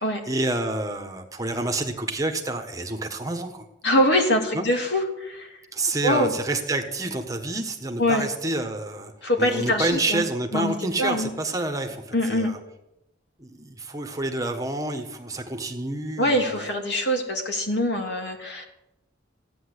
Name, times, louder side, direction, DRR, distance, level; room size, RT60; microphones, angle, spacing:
voice 1, 0.0-3.6 4.5-4.6 5.7-9.1 9.4-12.6 13.4-16.7, right 2 dB, 20° right, 5 dB, 1.4 m, -28 dB
voice 2, 3.8-5.5 6.0-6.3 8.0-8.3 9.2-10.2 10.5-10.7 11.0-11.3 12.1-12.5 16.2-18.6, left 1 dB, 60° left, 2 dB, 3.1 m, -23 dB
16.0 x 9.5 x 8.1 m, 0.90 s
head